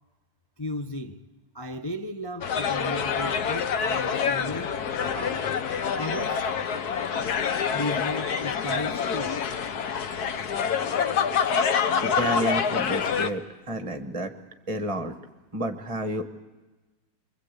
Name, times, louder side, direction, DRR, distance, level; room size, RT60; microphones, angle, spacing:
voice 1, 0.6-1.2 1.5-5.5 5.9-6.4 7.7-9.4 11.9-12.2, left 1 dB, 40° left, 0.3 m, -35 dB
sound 1, 2.4-13.3, left 7 dB, 60° left, 1.5 m, -26 dB
voice 2, 12.0-13.4 13.7-14.3 14.7-15.1 15.5-16.3, right 1 dB, 20° right, 1.1 m, -30 dB
25.0 x 24.0 x 8.2 m
omnidirectional pair, 2.0 m